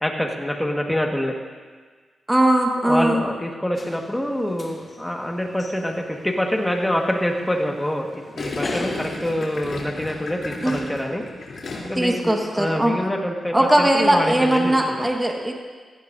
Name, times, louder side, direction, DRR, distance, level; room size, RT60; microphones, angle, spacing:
voice 1, 0.0-1.3 2.8-11.2 11.8-15.1, equal, 10° left, 1 dB, 1.6 m, -26 dB
voice 2, 2.3-3.2 10.6-10.9 12.0-12.9 13.5-15.5, right 1 dB, 10° right, 1 dB, 1.5 m, -19 dB
sound 1, 3.7-9.1, left 2 dB, 35° left, 1.9 m, -39 dB
Gurgling, 8.4-12.1 12.4-12.8, left 3 dB, 65° left, 3.2 m, -33 dB
16.5 x 15.0 x 2.7 m, 1.5 s
cardioid pair, 90°, 0 cm